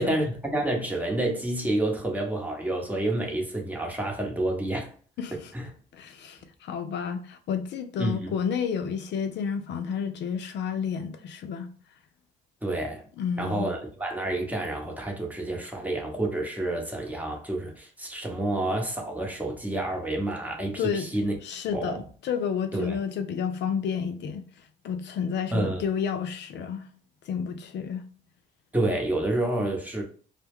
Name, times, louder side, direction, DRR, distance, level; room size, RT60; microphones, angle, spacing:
voice 1, 0.0-4.9 5.3-5.7 8.0-8.3 12.6-13.0 13.4-21.4 21.7-22.0 22.7-23.0 25.5-25.8 28.7-30.0, right 1 dB, 10° right, 0.9 m, -29 dB
voice 2, 5.2-5.5 5.9-11.7 13.2-13.7 20.8-21.1 21.4-24.4 24.8-26.8 27.3-28.0, left 7 dB, 65° left, 0.5 m, -30 dB
2.2 x 2.1 x 3.4 m
supercardioid pair, 70°, 20 cm